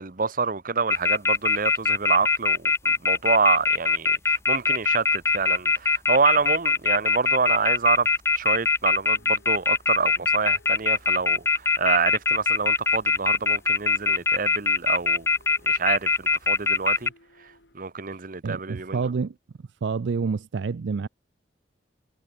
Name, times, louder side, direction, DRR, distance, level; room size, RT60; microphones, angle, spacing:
voice 1, 0.0-8.1 8.4-15.3 15.7-17.1 17.7-19.0, right 5 dB, 50° right, 1.1 m, -27 dB
sound 1, 0.9-17.1, left 4 dB, 15° left, 0.4 m, -21 dB
sound 2, 9.1-17.8, left 2 dB, 75° left, 7.8 m, -59 dB
voice 2, 18.4-19.4 19.8-21.1, right 5 dB, 75° right, 0.4 m, -28 dB
head